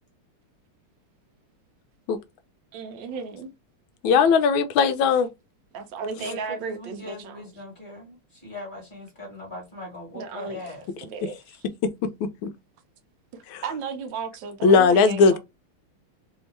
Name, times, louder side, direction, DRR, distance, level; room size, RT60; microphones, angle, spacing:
voice 1, 2.7-3.5 5.7-7.5 10.1-10.6 11.0-11.6 13.6-15.4, right 5 dB, 70° right, 1.2 m, -34 dB
voice 2, 4.0-5.3 12.4-12.5 13.5-13.6 14.6-15.4, left 5 dB, 75° left, 1.3 m, -18 dB
voice 3, 6.2-10.9, left 1 dB, 25° left, 1.7 m, -40 dB
3.5 x 2.7 x 3.1 m
omnidirectional pair, 2.3 m